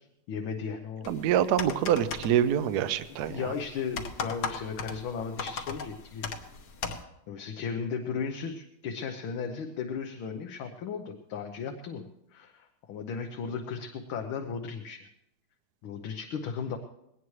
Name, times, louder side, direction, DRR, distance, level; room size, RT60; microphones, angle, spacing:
voice 1, 0.0-1.1 3.1-6.3 7.3-15.1 15.8-16.8, left 6 dB, 75° left, 3 dB, 1.8 m, -36 dB
sound 1, 1.0-7.0, left 5 dB, 60° left, 1.5 m, -38 dB
voice 2, 1.1-3.5, right 10 dB, 65° right, 12 dB, 1.0 m, -26 dB
20.5 x 18.0 x 3.2 m, 0.81 s
omnidirectional pair, 2.3 m